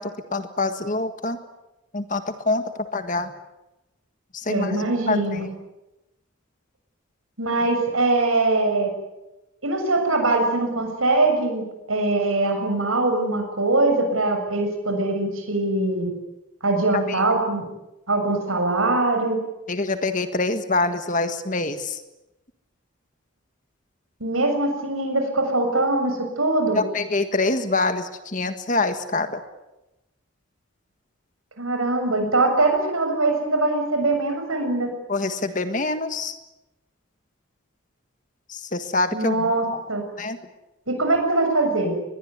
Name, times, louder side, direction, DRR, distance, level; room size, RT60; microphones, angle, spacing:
voice 1, 0.0-1.4 1.9-3.3 4.3-5.5 16.9-17.2 19.7-22.0 26.7-29.4 35.1-36.4 38.5-39.5 40.2-40.4, left 3 dB, 40° left, 9 dB, 1.6 m, -25 dB
voice 2, 4.5-5.5 7.4-8.9 9.6-16.1 16.6-17.7 18.1-19.4 24.2-26.8 31.6-34.9 39.1-40.0 40.9-42.0, right 2 dB, 80° right, 5 dB, 6.9 m, -22 dB
24.5 x 21.5 x 9.6 m, 0.96 s
head